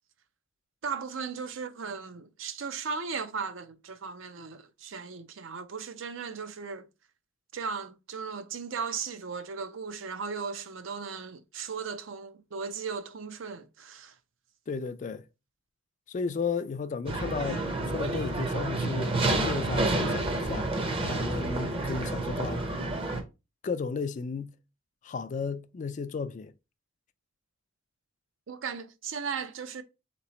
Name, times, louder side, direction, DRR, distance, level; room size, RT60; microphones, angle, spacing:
voice 1, 0.8-6.9 7.5-14.1 28.5-29.8, right 5 dB, 65° right, 0.5 m, -37 dB
voice 2, 14.7-15.2 16.1-22.6 23.6-24.5 25.0-26.5, left 5 dB, 35° left, 0.3 m, -34 dB
sound 1, 17.1-23.2, right 2 dB, 25° right, 0.6 m, -29 dB
3.8 x 3.0 x 4.0 m
head